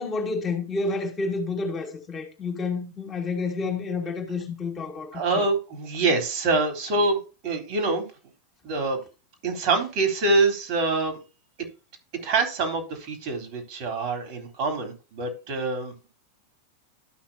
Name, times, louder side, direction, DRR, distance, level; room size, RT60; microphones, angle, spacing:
voice 1, 0.0-5.5, left 3 dB, 20° left, 2.2 m, -29 dB
voice 2, 5.1-8.0 8.6-9.0 9.4-11.2 12.1-16.1, right 3 dB, 45° right, 3.7 m, -25 dB
13.0 x 6.0 x 2.8 m
figure-of-eight pair, 90°, 0 cm